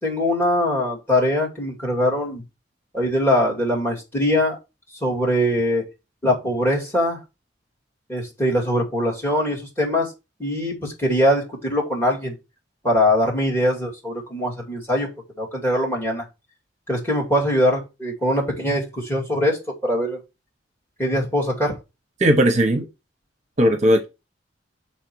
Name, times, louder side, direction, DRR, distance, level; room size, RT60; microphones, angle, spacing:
voice 1, 0.0-2.4 2.9-4.6 5.0-5.8 6.2-7.2 8.1-10.1 10.4-12.4 12.8-15.1 15.4-16.2 16.9-20.2 21.0-21.8, left 1 dB, 10° left, 2.2 m, -22 dB
voice 2, 22.2-22.9 23.6-24.1, right 1 dB, 40° right, 0.8 m, -17 dB
6.4 x 4.4 x 4.6 m
head